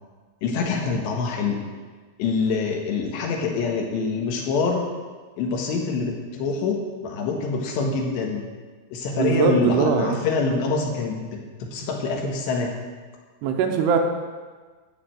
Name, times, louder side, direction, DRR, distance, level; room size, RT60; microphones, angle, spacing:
voice 1, 0.4-1.6 2.2-4.8 5.4-8.5 8.9-11.3 11.6-12.7, left 4 dB, 75° left, 1 dB, 3.7 m, -25 dB
voice 2, 9.2-10.2 13.4-14.0, right 6 dB, 80° right, 4 dB, 2.9 m, -21 dB
14.5 x 5.1 x 7.7 m, 1.4 s
omnidirectional pair, 5.1 m